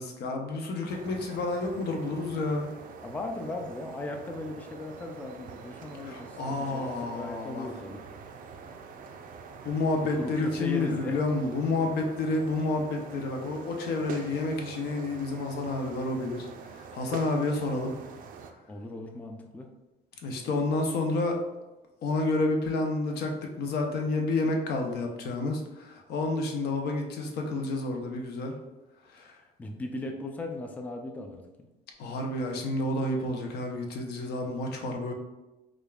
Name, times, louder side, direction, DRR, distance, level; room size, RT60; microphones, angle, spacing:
voice 1, 0.0-2.7 6.0-7.7 9.6-17.9 20.2-21.4 22.0-28.5 29.1-29.4 32.0-35.1, left 2 dB, 70° left, 2 dB, 0.7 m, -30 dB
sound 1, 0.9-18.5, right 5 dB, 55° right, 0.4 m, -45 dB
voice 2, 3.0-8.0 10.2-11.2 18.7-19.7 29.6-31.7, left 2 dB, 10° left, 3 dB, 0.3 m, -37 dB
5.0 x 2.4 x 2.3 m, 1.1 s
cardioid pair, 110°, 17 cm